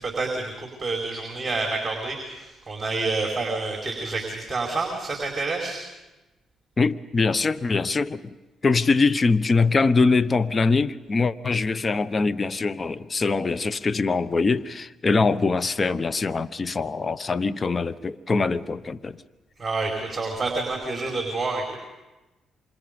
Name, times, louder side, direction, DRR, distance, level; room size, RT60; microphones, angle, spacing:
voice 1, 0.0-5.8 19.6-21.8, right 3 dB, 25° right, 4.8 m, -28 dB
voice 2, 6.8-8.4 8.6-19.2, left 4 dB, 40° left, 1.0 m, -23 dB
28.0 x 25.0 x 5.3 m
supercardioid pair, 55°, 0 cm